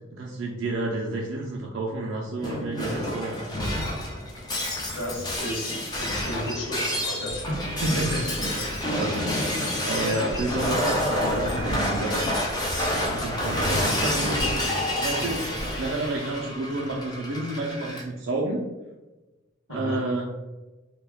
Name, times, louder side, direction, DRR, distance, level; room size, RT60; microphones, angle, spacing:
voice 1, 0.1-3.4 7.8-9.3 9.8-15.5 15.8-18.6 19.7-20.3, right 2 dB, 65° right, -1 dB, 0.4 m, -30 dB
Shatter, 2.4-18.0, left 1 dB, 20° left, 0.5 m, -28 dB
voice 2, 5.0-7.6 19.7-20.0, equal, 80° left, -3 dB, 0.8 m, -33 dB
2.2 x 2.1 x 3.3 m, 1.1 s
head